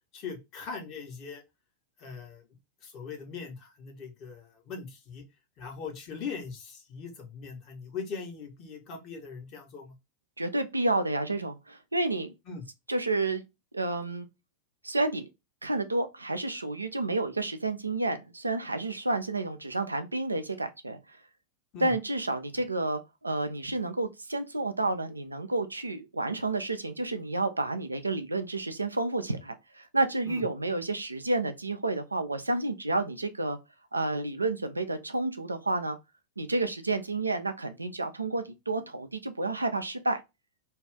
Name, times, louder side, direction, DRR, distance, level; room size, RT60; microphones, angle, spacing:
voice 1, 0.1-1.4 2.0-2.5 2.8-5.2 5.6-10.0 12.5-12.6 21.7-21.9 30.3-30.4, left 5 dB, 40° left, 1.1 m, -40 dB
voice 2, 10.4-12.3 12.9-13.4 13.7-14.3 14.8-15.3 15.6-21.2 21.8-33.6 33.9-36.0 36.4-40.2, right 2 dB, 80° right, 0.4 m, -30 dB
2.6 x 2.4 x 3.4 m
figure-of-eight pair, 90°, 0 cm